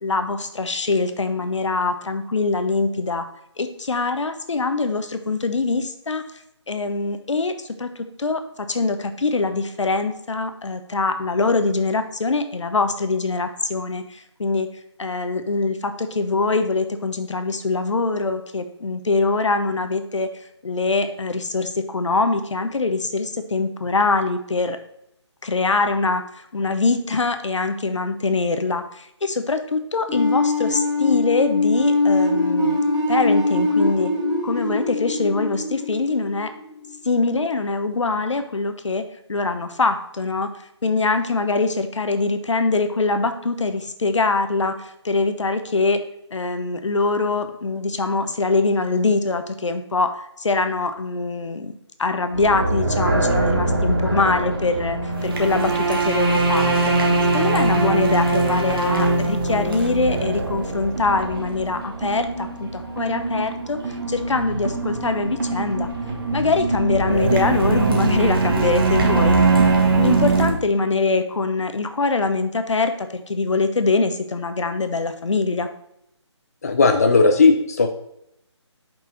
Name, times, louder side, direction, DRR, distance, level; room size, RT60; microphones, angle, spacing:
voice 1, 0.0-3.2 3.6-6.2 6.7-14.7 15.0-20.3 20.6-24.8 25.4-32.8 33.1-34.1 34.4-36.5 37.0-39.0 39.3-46.0 46.3-57.0 57.3-65.9 66.3-69.4 69.9-75.7, left 3 dB, 80° left, 8 dB, 0.9 m, -23 dB
sound 1, 30.1-37.0, left 2 dB, 5° left, 1.8 m, -22 dB
sound 2, 52.3-70.5, right 3 dB, 50° right, 1.3 m, -22 dB
voice 2, 76.6-77.9, left 4 dB, 35° left, 5 dB, 0.5 m, -16 dB
5.5 x 4.8 x 3.9 m, 0.79 s
figure-of-eight pair, 165°, 15 cm